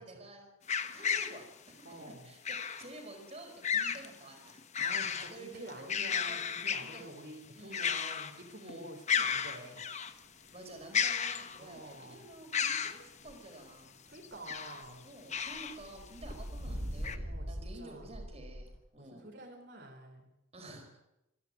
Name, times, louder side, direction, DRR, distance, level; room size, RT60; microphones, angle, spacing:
voice 1, 0.0-4.6 5.1-6.4 6.8-7.1 7.5-7.9 8.5-8.8 10.5-13.9 15.0-19.3 20.5-21.0, right 2 dB, 30° right, 3 dB, 4.5 m, -51 dB
sound 1, 0.7-1.4 2.5-2.9 3.6-4.1 4.5-5.3 5.7-7.0 7.7-8.4 8.7-8.8 9.1-10.1 10.9-11.8 12.5-13.0 14.2-14.8 15.3-15.8 16.3-16.4 17.0-17.2, left 7 dB, 35° left, 1.1 m, -33 dB
voice 2, 1.8-2.3 4.8-9.9 10.4-10.5 11.6-12.3 14.0-15.1 17.2-18.1 19.0-20.3 20.6-20.8, right 1 dB, 55° right, 1 dB, 4.0 m, -49 dB
sound 2, 10.8-13.8 14.1-14.9 15.3-18.8, equal, 75° right, 7.0 m, -42 dB
26.5 x 11.0 x 9.6 m, 0.90 s
head